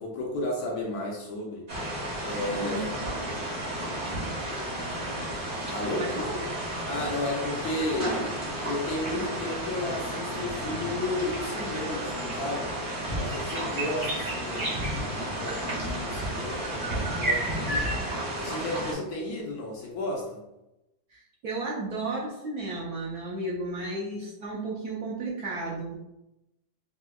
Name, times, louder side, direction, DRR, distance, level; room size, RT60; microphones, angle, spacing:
voice 1, 0.0-1.7 2.2-3.0 5.7-6.1 6.9-12.7 13.1-14.7 15.1-17.9 18.4-20.4, left 2 dB, 70° left, -1 dB, 1.0 m, -33 dB
sound 1, 1.7-18.9, right 1 dB, 40° right, 0.8 m, -32 dB
voice 2, 6.0-6.4 21.1-26.0, right 2 dB, 70° right, -3 dB, 0.9 m, -33 dB
4.3 x 2.1 x 2.2 m, 0.93 s
omnidirectional pair, 1.9 m